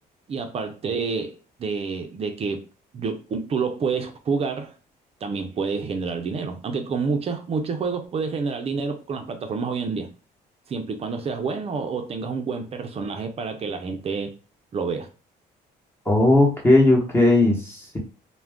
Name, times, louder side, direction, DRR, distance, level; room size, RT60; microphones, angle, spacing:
voice 1, 0.3-2.6 2.9-4.7 5.2-10.1 10.7-14.3 14.7-15.1, right 5 dB, 35° right, 5 dB, 0.5 m, -28 dB
voice 2, 16.1-18.0, left 2 dB, 15° left, -1 dB, 1.0 m, -17 dB
2.3 x 2.2 x 3.4 m, 0.34 s
cardioid pair, 110°, 17 cm